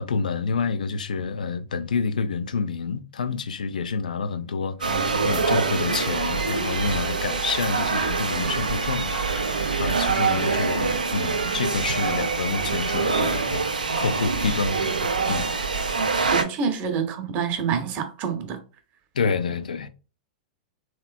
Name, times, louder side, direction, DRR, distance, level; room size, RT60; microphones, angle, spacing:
voice 1, 0.0-15.5 19.1-19.9, left 5 dB, 75° left, 0.3 m, -28 dB
sound 1, 4.8-16.4, right 4 dB, 85° right, 0.5 m, -25 dB
voice 2, 16.3-18.6, right 6 dB, 40° right, 0.7 m, -27 dB
3.1 x 3.0 x 2.2 m
figure-of-eight pair, 100°, 4 cm